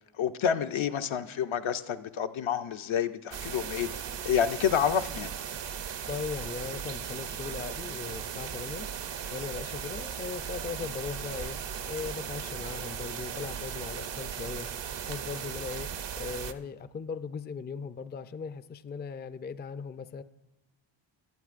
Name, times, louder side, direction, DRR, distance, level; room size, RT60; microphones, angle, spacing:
voice 1, 0.2-3.9 4.2-5.3, left 8 dB, 70° left, 8 dB, 0.7 m, -28 dB
sound 1, 3.3-16.5, right 8 dB, 60° right, 0.7 m, -37 dB
voice 2, 6.1-8.9 9.3-11.6 11.9-14.7 15.0-15.9 16.2-20.2, left 5 dB, 20° left, 13 dB, 0.4 m, -38 dB
17.5 x 11.5 x 2.5 m, 0.96 s
cardioid pair, 50°, 50 cm